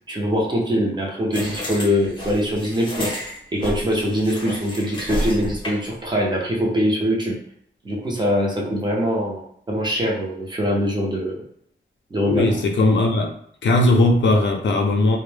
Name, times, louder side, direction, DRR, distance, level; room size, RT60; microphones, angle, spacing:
voice 1, 0.1-3.1 3.5-7.4 7.8-11.4 12.1-12.6, equal, 20° right, -2 dB, 0.5 m, -23 dB
sound 1, 1.3-6.0, left 1 dB, 25° left, 0.7 m, -30 dB
voice 2, 12.3-13.3 13.6-15.2, left 2 dB, 70° left, 2 dB, 0.5 m, -18 dB
2.1 x 2.0 x 3.1 m, 0.67 s
wide cardioid pair, 175°, 20 cm